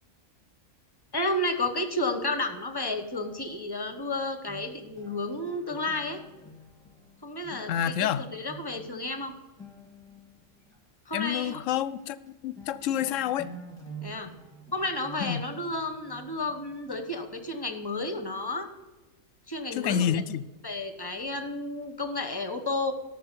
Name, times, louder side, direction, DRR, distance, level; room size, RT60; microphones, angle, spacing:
voice 1, 1.1-6.2 7.2-9.3 11.1-11.6 14.0-14.3 14.7-18.7 19.5-20.2 20.6-22.9, left 2 dB, 20° left, 1.0 m, -32 dB
sound 1, 3.1-10.8 11.4-11.5 11.9-12.3 12.6-18.2, right 2 dB, 5° left, 1.8 m, -49 dB
voice 2, 7.7-8.2 11.1-13.5 15.2-15.5 19.7-20.4, left 9 dB, 75° left, 0.9 m, -28 dB
13.0 x 6.6 x 6.8 m
omnidirectional pair, 1.4 m